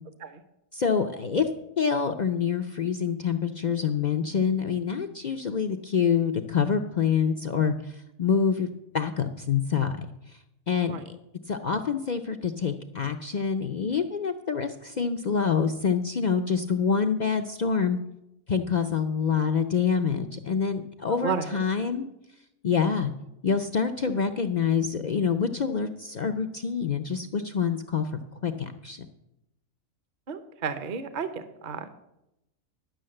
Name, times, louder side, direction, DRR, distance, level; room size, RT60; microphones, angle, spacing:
voice 1, 0.7-1.5 1.8-7.9 8.2-8.7 8.9-10.0 10.7-11.0 11.5-18.0 18.5-22.1 22.6-23.1 23.4-28.1 28.4-29.1, left 6 dB, 55° left, 6 dB, 0.5 m, -26 dB
voice 2, 21.2-21.6 30.3-32.0, right 6 dB, 40° right, 10 dB, 0.8 m, -32 dB
11.5 x 6.4 x 7.6 m, 0.86 s
omnidirectional pair, 1.5 m